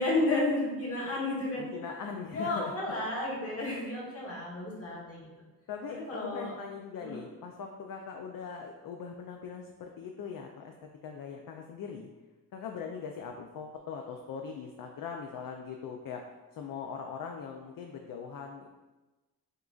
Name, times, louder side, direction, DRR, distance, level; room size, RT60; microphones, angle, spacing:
voice 1, 0.0-1.7 2.3-5.3 6.1-6.5 7.0-7.2, left 2 dB, 35° left, -5 dB, 1.5 m, -32 dB
voice 2, 1.5-2.8 5.7-10.7 11.0-12.1 12.5-18.7, left 6 dB, 60° left, 3 dB, 0.5 m, -41 dB
6.5 x 2.5 x 2.4 m, 1.1 s
cardioid pair, 100°, 38 cm